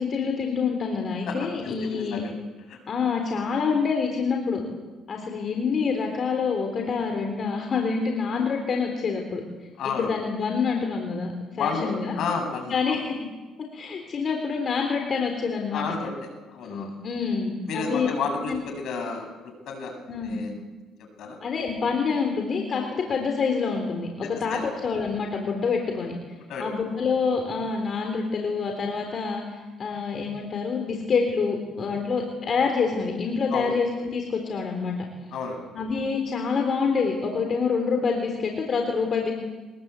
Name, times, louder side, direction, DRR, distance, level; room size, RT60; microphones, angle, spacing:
voice 1, 0.0-2.2 2.9-4.6 5.1-9.4 9.9-12.1 12.7-13.0 13.7-15.9 16.6-18.1 18.5-18.6 20.1-20.4 21.4-26.1 26.6-35.0 35.7-39.3, left 5 dB, 40° left, 3 dB, 3.7 m, -27 dB
voice 2, 1.6-2.3 2.7-2.8 9.8-10.1 11.5-11.9 12.2-13.0 15.7-17.0 17.7-19.3 19.7-19.9 20.2-20.5 21.2-21.4 24.2-24.6 26.5-26.7 33.5-33.7 35.3-35.6, left 5 dB, 65° left, 5 dB, 7.8 m, -31 dB
24.0 x 21.0 x 8.4 m, 1.2 s
cardioid pair, 120°, 0 cm